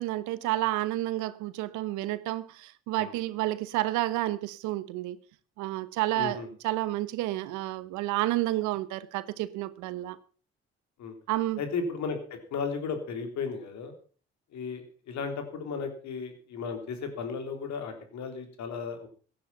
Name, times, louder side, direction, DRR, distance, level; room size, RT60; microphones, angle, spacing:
voice 1, 0.0-5.2 5.6-10.2 11.3-11.6, right 16 dB, 80° right, 1.0 m, -30 dB
voice 2, 6.1-6.5 11.0-11.1 11.6-13.9 14.5-19.1, left 5 dB, 70° left, 3.4 m, -35 dB
16.0 x 10.5 x 5.7 m
hypercardioid pair, 50°, 29 cm